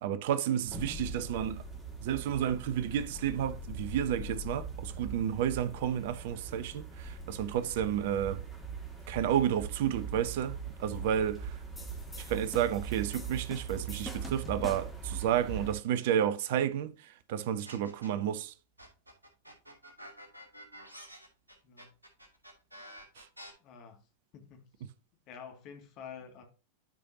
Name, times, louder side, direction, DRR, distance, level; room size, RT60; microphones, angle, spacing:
voice 1, 0.0-1.6 2.0-8.4 9.1-11.6 12.2-18.5 23.2-23.3, right 10 dB, 50° right, 0.8 m, -31 dB
sound 1, 0.6-15.7, right 4 dB, 10° right, 3.2 m, -41 dB
sound 2, 11.8-15.1, left 2 dB, 10° left, 2.0 m, -46 dB
sound 3, 17.6-18.3 18.8-23.5, equal, 80° right, 2.9 m, -49 dB
voice 2, 23.6-24.0 24.3-24.9 25.3-26.4, left 7 dB, 40° left, 2.3 m, -49 dB
12.0 x 5.2 x 2.8 m
figure-of-eight pair, 90°, 0 cm